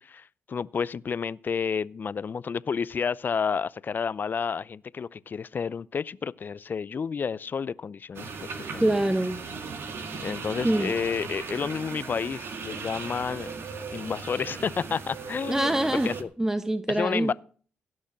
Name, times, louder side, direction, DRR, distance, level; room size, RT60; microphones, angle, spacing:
voice 1, 0.0-8.9 10.2-13.5 13.9-16.3 16.9-17.3, left 6 dB, 45° left, 0.6 m, -30 dB
sound 1, 8.1-16.2, right 5 dB, 60° right, 1.9 m, -37 dB
voice 2, 8.8-9.4 10.6-10.9 15.5-16.1 16.4-17.3, right 1 dB, 10° right, 1.2 m, -25 dB
16.5 x 6.3 x 7.5 m
hypercardioid pair, 45°, 5 cm